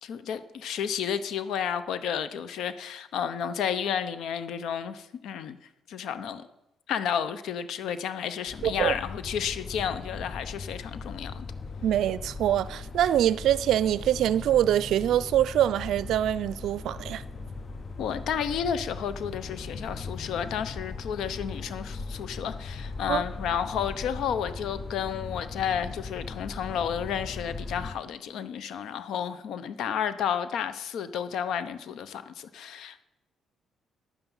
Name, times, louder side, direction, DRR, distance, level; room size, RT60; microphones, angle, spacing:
voice 1, 0.0-5.6 5.9-6.5 6.9-11.4 18.0-33.0, left 8 dB, 75° left, 0.8 m, -31 dB
sound 1, 8.5-27.9, left 4 dB, 35° left, 0.8 m, -39 dB
voice 2, 8.6-8.9 11.8-17.2 23.1-23.2, right 11 dB, 80° right, 0.4 m, -24 dB
10.5 x 9.0 x 5.6 m
cardioid pair, 90°, 0 cm